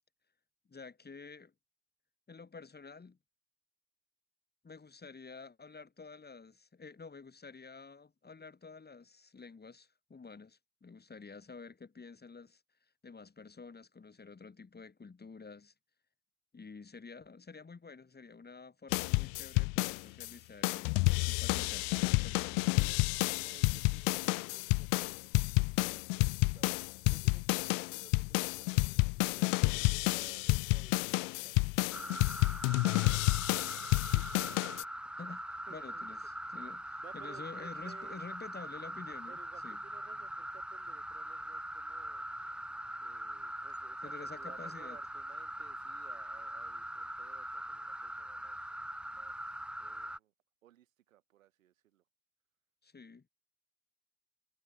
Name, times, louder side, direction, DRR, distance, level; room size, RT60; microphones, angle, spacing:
voice 1, 0.7-1.5 2.3-3.2 4.6-15.7 16.5-21.0 21.2-23.0 35.2-39.8 44.0-45.0 52.8-53.3, left 4 dB, 25° left, 4.4 m, -50 dB
sound 1, 18.9-20.3 20.6-34.8, left 34 dB, 60° left, 0.5 m, -30 dB
voice 2, 23.4-25.2 25.6-26.8 27.1-33.7 33.9-34.6 35.7-36.0 37.0-38.2 39.3-42.3 43.0-48.7 49.1-50.3 50.6-52.0, right 12 dB, 80° right, 5.0 m, -59 dB
sound 2, 31.9-50.2, right 1 dB, 5° right, 1.1 m, -42 dB
hypercardioid pair, 60°, 39 cm